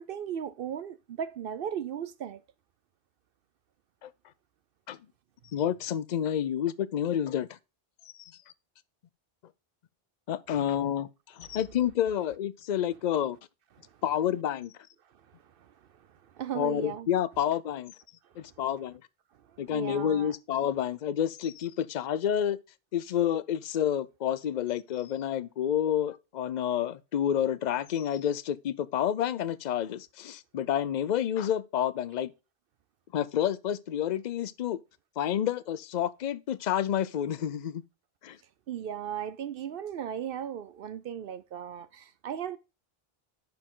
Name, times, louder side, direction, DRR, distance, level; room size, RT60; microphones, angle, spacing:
voice 1, 0.0-2.4 10.5-10.6 13.8-14.0 15.3-17.1 18.2-18.5 19.3-20.3 38.7-42.6, right 9 dB, 65° right, 0.7 m, -37 dB
voice 2, 5.5-7.6 8.2-8.3 10.3-13.4 14.0-14.7 16.5-17.9 18.4-19.0 19.6-22.6 22.9-32.3 33.1-34.8 35.2-37.8 38.2-38.4, left 10 dB, 55° left, 0.6 m, -29 dB
10.5 x 4.5 x 3.7 m
omnidirectional pair, 1.0 m